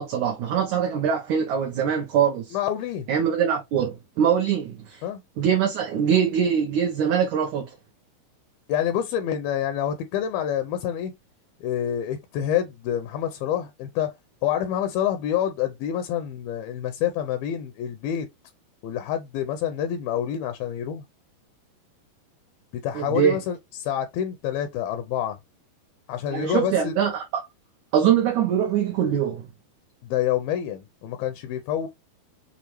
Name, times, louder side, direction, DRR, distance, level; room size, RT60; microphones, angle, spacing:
voice 1, 0.0-2.6 3.1-5.0 5.4-7.7 22.9-23.4 26.3-27.2 27.9-29.5, right 8 dB, 80° right, 1.7 m, -23 dB
voice 2, 2.5-3.1 5.0-5.2 8.7-11.1 11.6-14.1 14.4-18.3 18.8-21.0 22.7-25.4 26.1-26.9 30.0-31.9, left 10 dB, 80° left, 2.3 m, -27 dB
6.8 x 2.4 x 3.0 m
omnidirectional pair, 4.4 m